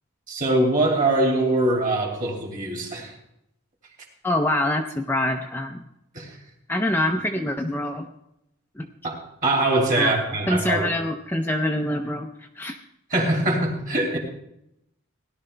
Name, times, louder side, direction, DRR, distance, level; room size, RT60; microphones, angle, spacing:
voice 1, 0.3-3.1 6.1-6.4 9.0-10.9 13.1-14.2, right 2 dB, 35° right, 0 dB, 2.8 m, -23 dB
voice 2, 4.2-5.8 6.7-8.1 8.8-8.9 10.0-12.8, left 1 dB, 10° left, 3 dB, 0.5 m, -25 dB
17.5 x 11.5 x 3.3 m, 0.82 s
head